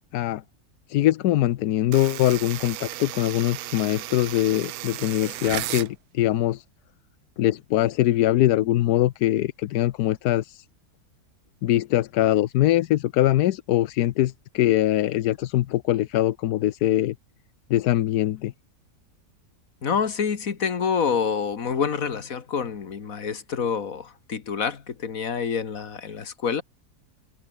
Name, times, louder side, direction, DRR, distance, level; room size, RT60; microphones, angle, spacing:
voice 1, 0.9-6.6 7.4-10.6 11.6-17.1 17.7-18.5, left 14 dB, 90° left, 1.2 m, -22 dB
sound 1, 1.9-5.9, right 16 dB, 75° right, 1.0 m, -34 dB
voice 2, 19.8-26.6, left 6 dB, 60° left, 2.1 m, -27 dB
open air
omnidirectional pair, 1.6 m